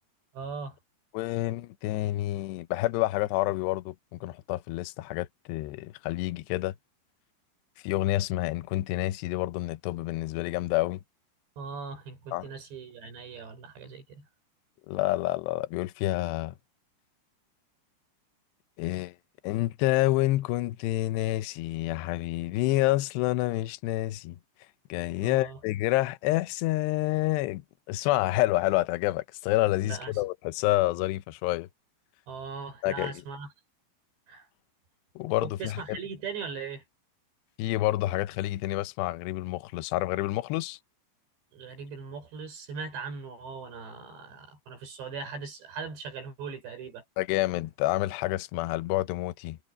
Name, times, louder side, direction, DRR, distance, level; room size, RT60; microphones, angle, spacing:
voice 1, 0.3-0.8 11.6-14.3 25.2-25.6 29.8-30.1 32.3-33.5 34.3-34.5 35.4-36.8 41.5-47.0, right 5 dB, 75° right, 7.8 m, -39 dB
voice 2, 1.1-6.7 7.8-11.0 12.3-12.5 14.9-16.5 18.8-19.1 19.4-24.4 24.9-27.6 27.9-31.7 32.8-33.1 35.2-35.8 37.6-40.8 47.2-49.6, left 17 dB, 80° left, 2.9 m, -28 dB
omnidirectional pair, 5.0 m